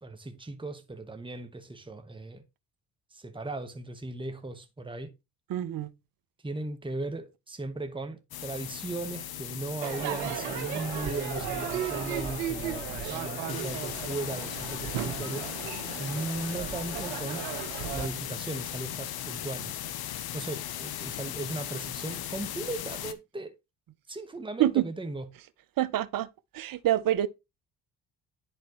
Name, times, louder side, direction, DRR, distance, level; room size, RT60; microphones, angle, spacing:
voice 1, 0.0-2.4 3.1-5.1 6.4-15.5 16.0-17.4 17.9-19.8 20.3-23.5 24.1-25.3, right 2 dB, 10° right, 1.4 m, -37 dB
voice 2, 5.5-5.9 24.6-24.8 25.8-26.3 26.5-27.3, right 13 dB, 50° right, 0.8 m, -26 dB
sound 1, 8.3-23.1, left 11 dB, 55° left, 0.9 m, -38 dB
Crowd / Fireworks, 9.8-18.1, right 9 dB, 80° right, 1.1 m, -35 dB
11.0 x 4.2 x 3.1 m
hypercardioid pair, 55°, 43 cm